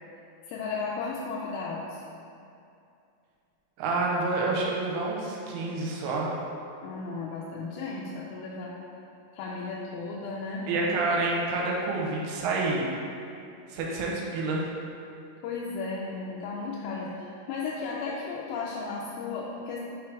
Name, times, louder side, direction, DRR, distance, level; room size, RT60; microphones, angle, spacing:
voice 1, 0.5-2.0 6.8-8.7 9.3-10.7 15.4-19.8, left 4 dB, 85° left, -5 dB, 2.5 m, -34 dB
voice 2, 3.8-6.3 10.7-12.9 13.7-14.7, right 3 dB, 90° right, -3 dB, 2.7 m, -28 dB
6.5 x 3.1 x 4.7 m, 2.6 s
omnidirectional pair, 4.3 m